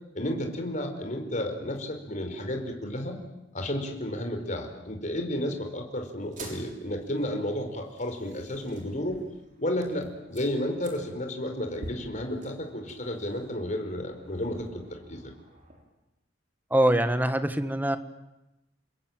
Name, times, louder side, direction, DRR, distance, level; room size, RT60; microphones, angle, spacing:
voice 1, 0.1-3.2 3.5-9.2 9.6-15.3, left 1 dB, 45° left, 4 dB, 4.9 m, -32 dB
sound 1, 6.2-15.8, right 1 dB, 45° right, 6.3 m, -48 dB
voice 2, 16.7-18.0, right 1 dB, 10° right, 10 dB, 1.6 m, -23 dB
29.0 x 22.0 x 9.4 m, 0.94 s
head